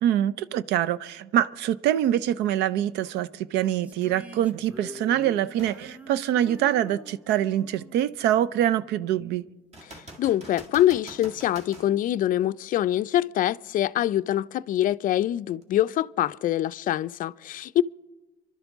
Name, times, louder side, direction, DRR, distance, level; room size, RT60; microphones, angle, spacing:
voice 1, 0.0-9.4, right 11 dB, 85° right, 0.5 m, -25 dB
sound 1, 3.8-9.2, equal, 10° right, 0.9 m, -45 dB
sound 2, 5.6-5.9 6.4-6.5 9.7-11.9 15.6-15.7, right 1 dB, 40° right, 2.0 m, -45 dB
voice 2, 10.2-17.8, left 13 dB, 55° left, 0.4 m, -24 dB
28.5 x 12.0 x 3.6 m
cardioid pair, 110°, 17 cm